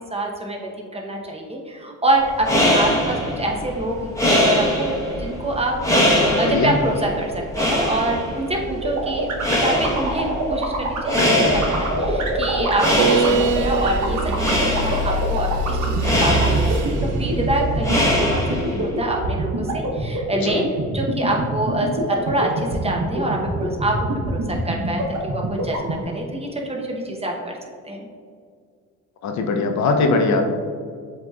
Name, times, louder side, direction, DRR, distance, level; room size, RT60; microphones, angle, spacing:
voice 1, 0.1-5.8 6.1-27.6 27.8-28.1, right 1 dB, 20° right, -1 dB, 0.9 m, -26 dB
sound 1, 2.2-18.9, left 1 dB, 10° left, 1.1 m, -23 dB
voice 2, 6.2-6.7 20.4-20.6 29.2-30.4, left 3 dB, 65° left, 4 dB, 0.6 m, -21 dB
sound 2, 8.8-25.9, right 3 dB, 65° right, 1.0 m, -24 dB
sound 3, 13.0-20.1, right 3 dB, 85° right, 0.5 m, -25 dB
7.6 x 2.9 x 2.4 m, 2.1 s
cardioid pair, 90°, 30 cm